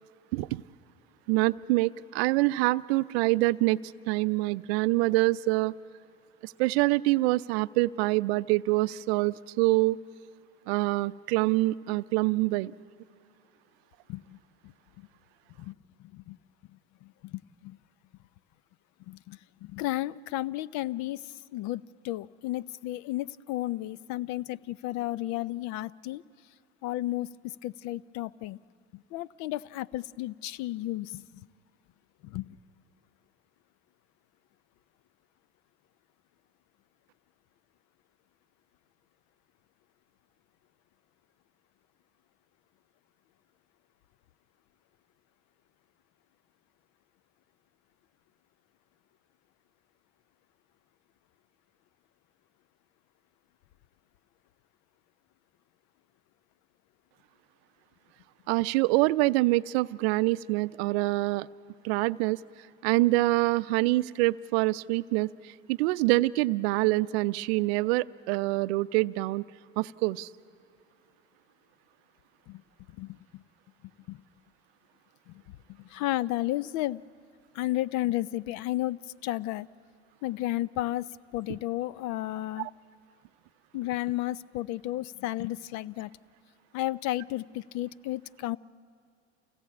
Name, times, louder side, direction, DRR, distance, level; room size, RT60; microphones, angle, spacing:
voice 1, 0.3-0.6 1.3-3.8 4.1-5.7 6.4-10.0 10.7-12.7 58.5-61.5 61.8-62.4 62.8-65.3 65.7-69.4 69.8-70.3 82.6-82.7, right 20 dB, 70° right, 16 dB, 0.6 m, -25 dB
voice 2, 16.0-16.4 17.0-17.8 19.1-26.2 26.8-27.3 27.6-28.6 28.9-31.2 32.2-32.6 72.5-72.6 73.0-73.4 74.1-74.2 75.3-75.4 75.8-77.0 77.5-79.7 80.2-81.1 81.3-82.7 83.7-86.1 86.7-88.6, left 16 dB, 55° left, 20 dB, 0.6 m, -33 dB
28.0 x 17.5 x 8.6 m, 2.4 s
hypercardioid pair, 75°, 33 cm